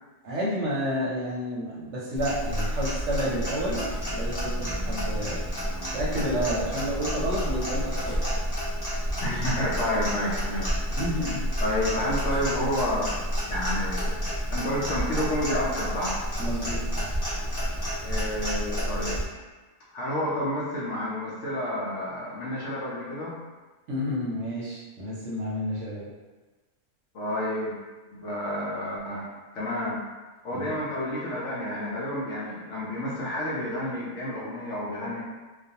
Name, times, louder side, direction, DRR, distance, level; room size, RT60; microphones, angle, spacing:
voice 1, 0.2-5.4 5.9-8.2 9.2-9.6 11.0-11.5 16.4-16.8 23.9-26.1 30.5-30.7, equal, 65° right, -6 dB, 0.8 m, -30 dB
Clock, 2.2-19.2, equal, 25° left, 0.5 m, -30 dB
voice 2, 9.2-10.8 11.6-13.1 13.5-16.2 18.0-19.2 19.9-23.3 27.1-27.8 28.2-29.3 29.5-30.0 30.4-35.2, left 1 dB, 65° left, -5 dB, 0.8 m, -30 dB
2.4 x 2.2 x 2.7 m, 1.2 s
omnidirectional pair, 1.5 m